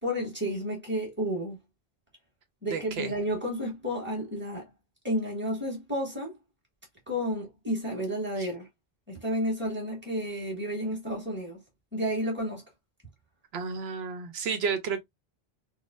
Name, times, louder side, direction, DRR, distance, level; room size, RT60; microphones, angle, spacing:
voice 1, 0.0-1.6 2.6-4.7 5.0-6.4 7.1-8.7 9.1-11.6 11.9-12.6, equal, 10° right, 1.4 m, -31 dB
voice 2, 2.7-3.1 8.4-8.5 13.5-15.0, right 5 dB, 80° right, 0.8 m, -31 dB
3.9 x 2.0 x 2.4 m
omnidirectional pair, 1.1 m